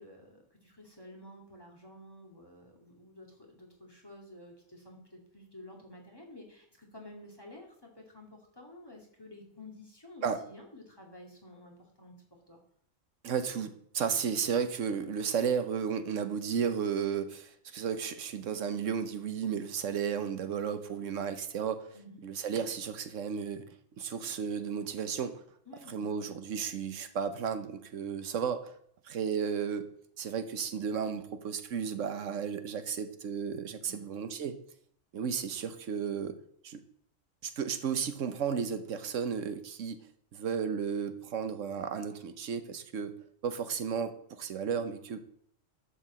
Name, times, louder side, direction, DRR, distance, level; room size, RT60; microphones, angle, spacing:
voice 1, 0.0-12.1 12.5-12.6 21.9-22.2 25.7-26.4 33.8-34.1, left 1 dB, 20° left, 0 dB, 2.3 m, -51 dB
voice 2, 13.2-21.9 22.2-23.6 24.0-25.4 25.9-28.7 29.0-29.9 30.2-34.6 35.1-36.3 36.6-36.8 37.4-40.0 40.3-43.1 43.4-45.2, right 7 dB, 85° right, 9 dB, 1.2 m, -33 dB
11.5 x 4.7 x 7.3 m, 0.65 s
omnidirectional pair, 1.3 m